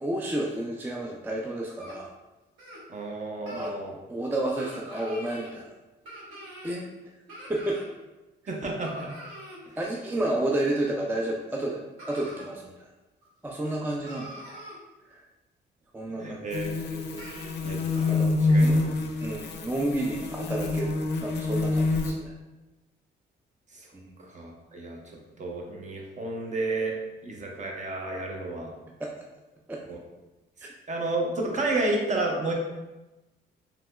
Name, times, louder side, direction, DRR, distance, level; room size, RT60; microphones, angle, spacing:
voice 1, 0.0-2.1 3.5-5.7 6.6-6.9 7.5-7.8 9.8-12.9 13.4-14.4 15.1-15.2 15.9-16.4 17.6-18.3 18.6-18.8 19.2-22.3 23.9-24.2 29.0-29.1 29.7-29.8 30.6-30.7, right 1 dB, 10° right, -1 dB, 0.3 m, -31 dB
sound 1, 1.8-2.0 2.6-2.8 3.4-3.7 4.6-5.5 6.0-6.8 7.3-7.9 8.8-9.6 11.2-11.3 12.0-12.4 13.2-13.3 13.7-13.8 14.1-14.8 16.5-16.6 17.2-17.5 17.9-18.0, equal, 85° right, 1.2 m, -44 dB
voice 2, 2.9-3.9 8.5-9.1 16.2-17.2 17.6-18.2 18.5-18.7 19.0-19.1 23.7-23.9 24.2-25.0 25.4-26.9 27.2-28.7 29.9-30.0 30.9-32.5, right 2 dB, 35° right, 0 dB, 0.7 m, -31 dB
sound 2, 16.5-22.1, left 2 dB, 60° left, 0.4 m, -26 dB
3.2 x 2.9 x 2.2 m, 1.1 s
cardioid pair, 90°, 20 cm